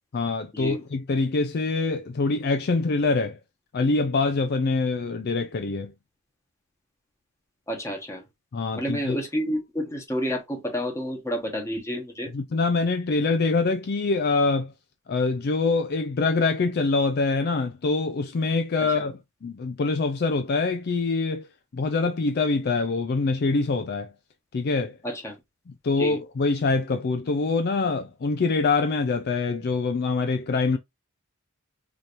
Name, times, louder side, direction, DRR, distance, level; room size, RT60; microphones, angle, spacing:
voice 1, 0.1-3.4 3.7-5.9 8.5-9.2 12.3-14.7 15.1-21.5 21.7-24.1 24.5-25.0 25.7-30.8, left 3 dB, 45° left, 0.4 m, -24 dB
voice 2, 7.7-8.2 8.7-12.3 18.9-19.1 25.0-25.3 26.0-26.2, equal, 15° left, 1.2 m, -30 dB
4.9 x 2.9 x 2.6 m
head